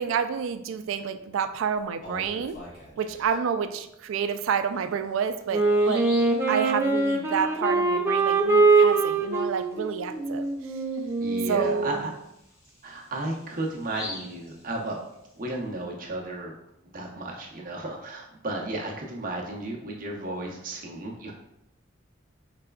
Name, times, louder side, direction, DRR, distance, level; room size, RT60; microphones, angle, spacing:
voice 1, 0.0-2.6 3.0-6.0 6.5-10.7 11.5-12.1, right 7 dB, 85° right, 10 dB, 0.3 m, -29 dB
Bird vocalization bird call bird song, 1.8-3.3 4.7-4.8 5.3-5.4 5.7-6.4 9.9-10.0 10.4-10.5 11.1-15.3, left 1 dB, 45° left, 1.5 m, -43 dB
Wind instrument woodwind instrument, 5.5-12.1, right 3 dB, 15° right, 0.5 m, -23 dB
voice 2, 11.2-12.1 12.8-15.0 15.4-16.6 16.8-21.3, right 2 dB, 45° right, -1 dB, 0.8 m, -34 dB
4.9 x 3.3 x 2.3 m, 0.83 s
head